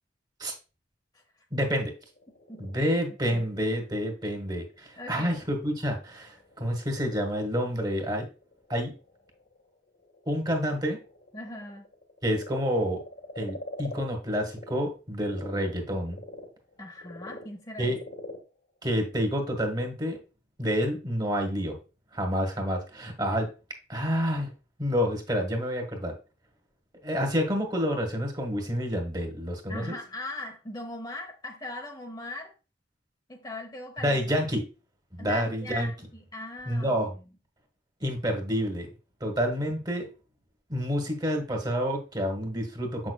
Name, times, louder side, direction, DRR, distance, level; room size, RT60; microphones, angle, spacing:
voice 1, 1.5-1.9 2.6-8.3 8.7-8.9 10.2-11.0 12.2-13.0 13.4-16.2 17.8-18.0 18.8-20.2 20.6-21.7 22.1-23.5 23.9-24.5 24.8-26.1 27.0-30.0 34.0-34.6 35.1-35.9 36.7-37.1 38.0-38.9 39.2-40.0 40.7-43.1, equal, 25° right, 3 dB, 1.6 m, -28 dB
Frog, 2.0-14.8 15.2-19.8, left 2 dB, 60° left, 1.7 m, -46 dB
voice 2, 2.5-2.9 3.3-3.5 5.0-5.5 11.3-11.9 16.8-18.0 29.7-32.5 33.3-34.3 35.2-37.2, left 1 dB, 25° left, 2 dB, 0.9 m, -40 dB
7.5 x 6.2 x 2.3 m, 0.31 s
head